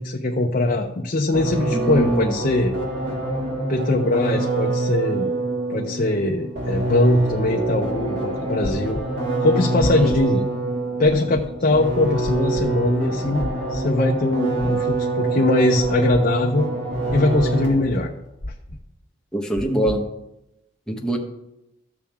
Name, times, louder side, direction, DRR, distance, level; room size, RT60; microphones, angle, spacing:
voice 1, 0.0-2.7 3.7-5.3 5.7-9.0 9.4-10.4 11.0-16.7 17.1-18.1, left 2 dB, 45° left, 0 dB, 0.8 m, -21 dB
sound 1, 1.3-18.0, right 2 dB, 80° right, 3.1 m, -26 dB
voice 2, 1.7-2.3 9.9-10.1 19.3-20.0 20.9-21.2, right 1 dB, 5° left, 0 dB, 1.3 m, -23 dB
sound 2, 8.6-9.0 9.8-10.2 11.0-11.4 12.2-12.6 13.4-13.8 14.6-15.0 15.8-16.2 17.1-17.5 18.4-18.8 19.6-20.0, left 1 dB, 80° left, 1.3 m, -31 dB
14.0 x 7.2 x 3.6 m, 0.88 s
head